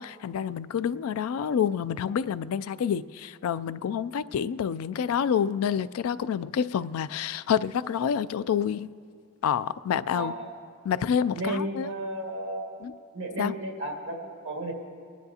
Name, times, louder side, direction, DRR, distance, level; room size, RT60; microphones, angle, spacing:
voice 1, 0.0-8.9 9.4-10.3 10.8-11.9 12.8-12.9 13.4-13.5, left 8 dB, 80° left, 0.3 m, -28 dB
voice 2, 10.1-10.5 11.3-12.7 13.1-14.7, right 1 dB, 60° right, 1.9 m, -33 dB
27.5 x 10.5 x 2.8 m
head